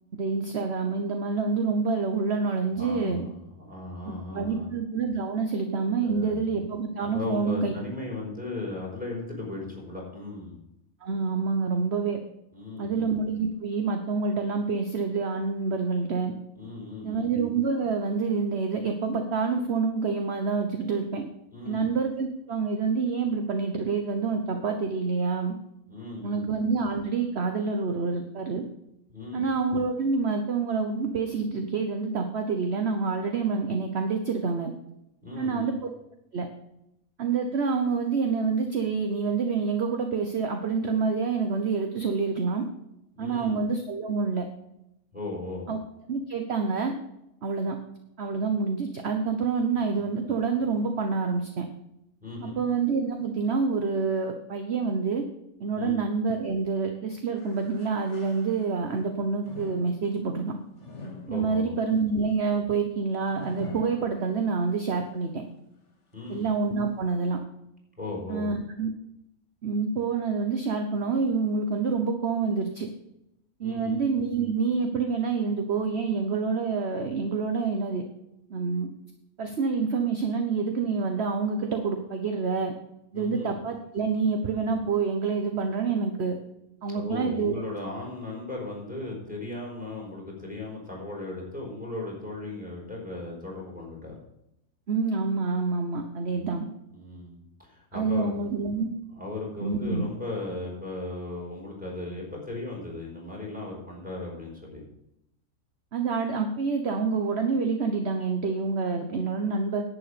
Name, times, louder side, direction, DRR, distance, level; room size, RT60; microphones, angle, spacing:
voice 1, 0.2-3.3 4.3-7.7 11.0-12.2 12.8-16.3 17.0-21.2 21.6-25.5 26.2-28.6 29.3-34.7 35.4-35.7 36.3-36.5 37.2-42.6 43.2-44.5 45.7-45.8 46.1-46.9 47.4-47.8 48.2-51.7 52.4-55.2 55.6-60.5 61.3-65.4 66.3-67.4 68.3-68.9 69.6-72.9 73.6-78.0 78.5-78.9 79.4-82.7 83.1-86.4 86.8-87.6 94.9-96.7 97.9-98.9 99.6-100.1 105.9-109.8, right 4 dB, 45° right, 5 dB, 1.2 m, -27 dB
voice 2, 2.8-4.7 6.0-6.5 7.1-10.6 12.5-13.1 16.5-17.3 21.5-21.9 25.9-26.5 29.1-29.4 35.2-35.7 43.2-43.6 45.1-45.7 52.2-52.6 55.8-56.0 61.3-61.6 66.1-66.5 68.0-68.5 73.6-74.0 83.1-83.5 86.8-94.1 96.3-96.5 96.9-98.3 99.1-104.8, left 2 dB, 5° right, -3 dB, 4.7 m, -37 dB
sound 1, 57.4-58.9 59.4-64.7 65.2-65.3 66.1-66.2, left 2 dB, 50° left, 2.1 m, -45 dB
11.0 x 8.8 x 5.0 m, 0.83 s
omnidirectional pair, 1.6 m